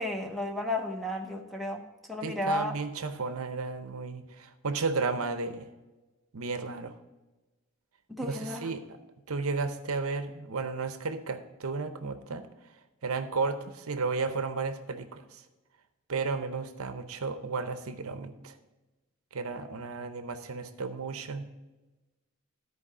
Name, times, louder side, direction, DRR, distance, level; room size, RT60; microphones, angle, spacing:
voice 1, 0.0-1.8 2.1-2.7 8.1-8.7, left 1 dB, ahead, 2 dB, 0.9 m, -33 dB
voice 2, 2.2-5.7 6.3-6.9 8.2-9.0 9.3-12.5 13.0-15.4 16.1-18.6 19.3-21.5, right 4 dB, 70° right, 9 dB, 0.7 m, -33 dB
12.5 x 4.8 x 4.8 m, 1.1 s
head